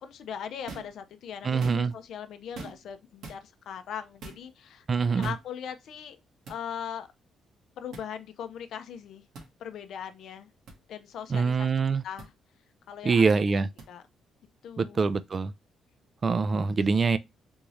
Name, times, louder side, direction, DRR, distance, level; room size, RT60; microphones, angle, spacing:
voice 1, 0.0-4.9 5.2-6.2 6.5-7.1 7.8-9.2 9.6-10.5 10.9-11.7 12.0-12.3 12.9-13.2 13.5-13.6 13.9-14.0 14.6-15.1, left 8 dB, 70° left, 0.5 m, -39 dB
sound 1, 0.7-1.0 1.5-2.0 2.5-2.9 3.2-3.4 4.2-4.4 5.2-5.4 6.4-6.6 7.9-8.1 9.3-9.5 10.7-10.8 12.2-12.3 13.8-13.9, right 3 dB, 80° right, 1.4 m, -43 dB
voice 2, 1.4-1.9 4.9-5.3 11.3-12.0 13.0-13.7 14.8-15.5 16.2-17.2, right 4 dB, 40° right, 0.4 m, -24 dB
3.6 x 2.7 x 3.1 m
cardioid pair, 90°, 0 cm